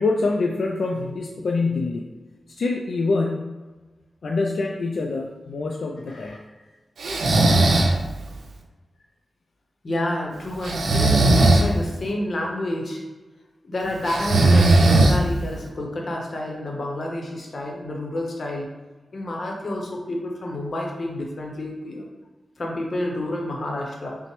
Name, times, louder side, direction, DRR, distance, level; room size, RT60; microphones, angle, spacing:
voice 1, 0.0-2.1 2.6-3.5 4.2-6.4, left 3 dB, 65° left, 0 dB, 0.3 m, -25 dB
Breathing, 7.0-8.0 10.6-11.7 14.1-15.5, right 2 dB, 90° right, 0.5 m, -17 dB
voice 2, 9.8-13.0 13.6-18.7 19.1-22.1 22.6-24.2, left 1 dB, 45° left, 0 dB, 0.7 m, -29 dB
5.8 x 2.1 x 3.0 m, 1.2 s
wide cardioid pair, 170°, 0 cm